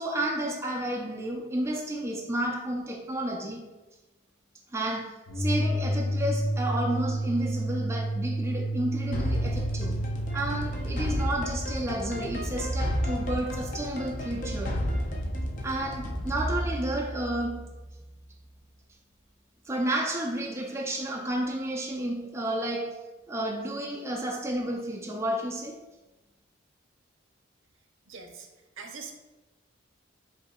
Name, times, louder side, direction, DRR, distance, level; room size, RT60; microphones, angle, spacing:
voice 1, 0.0-3.6 4.7-10.0 10.3-14.8 15.6-17.7 19.6-23.0 23.3-25.8, right 1 dB, 15° right, -1 dB, 0.4 m, -31 dB
sound 1, 5.3-10.9, right 1 dB, 70° left, 0.8 m, -30 dB
sound 2, 9.1-18.0, equal, 40° left, 0.5 m, -32 dB
voice 2, 28.1-28.5 28.8-29.1, right 5 dB, 80° right, 4 dB, 0.6 m, -42 dB
8.0 x 2.7 x 2.4 m, 1.1 s
head